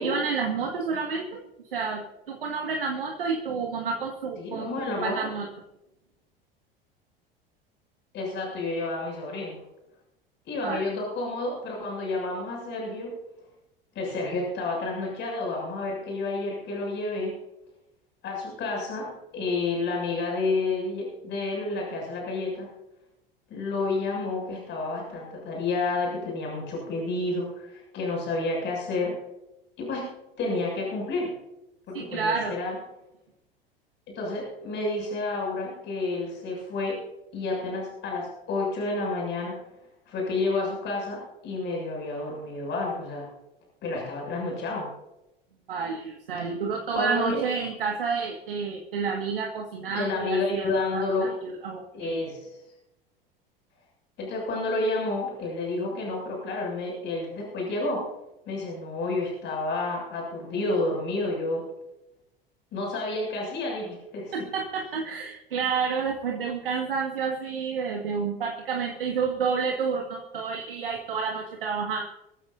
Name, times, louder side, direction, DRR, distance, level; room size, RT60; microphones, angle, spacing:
voice 1, 0.0-1.4 1.7-4.7 5.0-5.5 10.6-10.8 31.9-32.6 45.7-52.2 64.3-72.0, right 5 dB, 70° right, 1 dB, 1.9 m, -30 dB
voice 2, 4.4-5.3 8.1-9.6 10.5-13.1 14.0-17.4 18.2-22.7 23.5-29.2 29.8-30.1 30.4-31.3 31.9-32.8 34.1-37.0 37.3-39.6 40.1-43.3 43.8-44.9 46.9-47.4 49.9-51.4 51.9-52.6 54.2-58.0 58.5-61.6 62.7-64.4, left 2 dB, 40° left, -1 dB, 7.0 m, -30 dB
23.5 x 15.0 x 2.7 m, 0.90 s
figure-of-eight pair, 75°, 29 cm